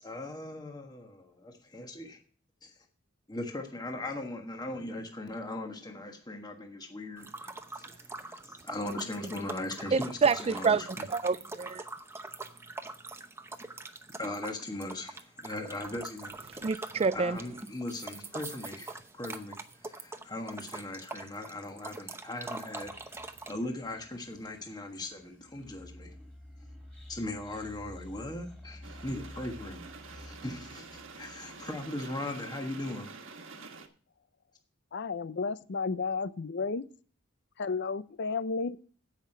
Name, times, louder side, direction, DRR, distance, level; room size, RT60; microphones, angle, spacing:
voice 1, 0.0-2.2 2.6-2.7 3.3-7.5 7.8-11.1 14.2-16.3 17.1-26.1 27.1-33.1, left 1 dB, 20° left, 1.4 m, -39 dB
sound 1, 7.2-23.5, right 2 dB, 15° right, 0.8 m, -43 dB
voice 2, 9.9-11.8 16.6-17.4, right 5 dB, 30° right, 0.4 m, -27 dB
sound 2, 22.8-32.0, left 1 dB, 5° left, 3.0 m, -51 dB
sound 3, 28.8-33.9, right 4 dB, 75° right, 1.5 m, -47 dB
voice 3, 34.9-36.8 37.6-38.8, left 4 dB, 60° left, 0.6 m, -32 dB
15.5 x 5.8 x 4.5 m
head